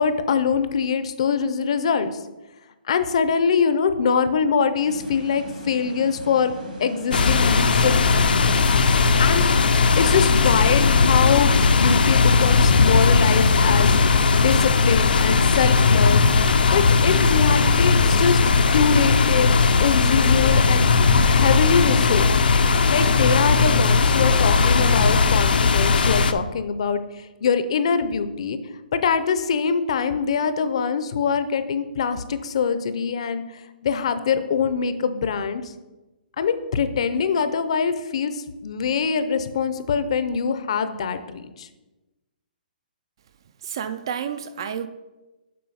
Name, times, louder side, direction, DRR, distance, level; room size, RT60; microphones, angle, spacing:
voice 1, 0.0-2.1 2.9-6.5 6.8-8.1 9.2-9.4 10.0-14.0 14.3-16.2 16.7-18.4 18.7-20.9 21.2-22.4 22.9-27.0 27.4-28.6 28.9-33.4 33.8-35.6 36.4-41.7, left 6 dB, 40° left, 11 dB, 0.6 m, -23 dB
sound 1, 4.8-11.4, right 2 dB, 65° right, 1.7 m, -39 dB
sound 2, 7.1-26.3, left 4 dB, 75° left, 0.7 m, -18 dB
voice 2, 43.6-44.9, right 8 dB, 30° right, 12 dB, 0.3 m, -30 dB
7.6 x 5.5 x 5.5 m, 1.1 s
hypercardioid pair, 175°, 5 cm